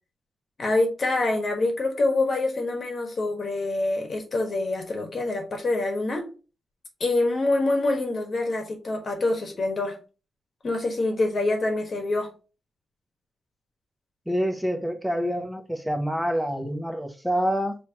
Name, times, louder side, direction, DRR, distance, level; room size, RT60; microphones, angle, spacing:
voice 1, 0.6-6.3 7.0-10.0 10.6-12.3, left 2 dB, 40° left, 1.3 m, -25 dB
voice 2, 14.3-17.8, equal, ahead, 0.7 m, -27 dB
5.3 x 3.0 x 2.8 m
wide cardioid pair, 155°, 0 cm